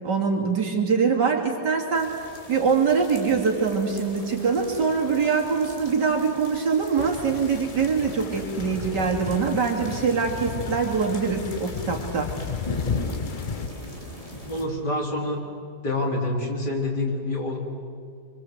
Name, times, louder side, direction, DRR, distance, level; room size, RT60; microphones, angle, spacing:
voice 1, 0.0-2.1 2.5-12.3, right 5 dB, 90° right, 1 dB, 3.3 m, -23 dB
sound 1, 1.9-14.6, left 1 dB, 20° left, 3.5 m, -40 dB
sound 2, 7.0-13.7, left 6 dB, 45° left, 0.6 m, -33 dB
voice 2, 14.5-15.4 15.8-17.6, left 2 dB, 75° left, -2 dB, 4.6 m, -27 dB
26.5 x 24.0 x 8.0 m, 2.2 s
omnidirectional pair, 1.8 m